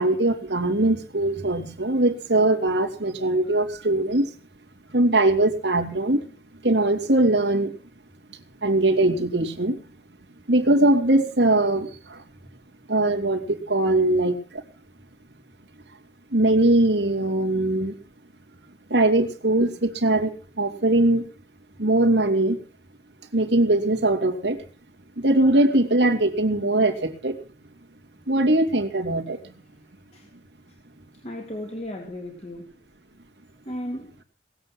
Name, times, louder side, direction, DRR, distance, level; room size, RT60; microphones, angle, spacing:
voice 1, 0.0-4.2 4.9-6.2 6.6-7.7 8.6-9.8 10.5-12.2 12.9-14.3 16.3-17.9 18.9-21.2 21.8-22.6 23.3-24.6 25.2-27.4 28.3-29.4, right 2 dB, 90° right, 2.8 m, -21 dB
voice 2, 31.2-32.7 33.7-34.1, left 1 dB, 35° left, 2.9 m, -35 dB
19.5 x 8.1 x 7.7 m
head